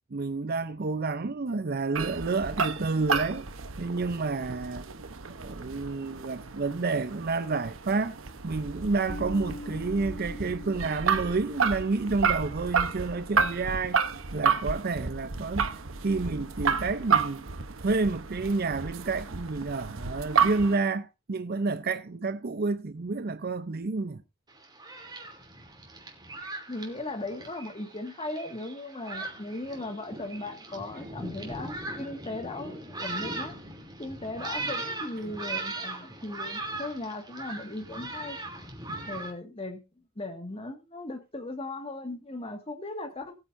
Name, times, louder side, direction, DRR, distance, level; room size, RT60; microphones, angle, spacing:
voice 1, 0.1-3.5 3.8-4.9 5.4-8.2 8.4-14.0 14.3-15.7 16.0-17.4 17.8-24.2 38.9-39.1, right 3 dB, 50° right, 0.6 m, -29 dB
sound 1, 1.9-20.8, right 6 dB, 80° right, 1.0 m, -31 dB
sound 2, 9.1-15.8, left 2 dB, 60° left, 2.1 m, -46 dB
Thunderstorm, 24.5-39.3, right 2 dB, 20° right, 3.0 m, -39 dB
voice 2, 26.7-33.5 34.0-38.4 39.1-39.8 40.2-43.4, left 2 dB, 30° left, 1.9 m, -37 dB
19.5 x 9.0 x 2.6 m
head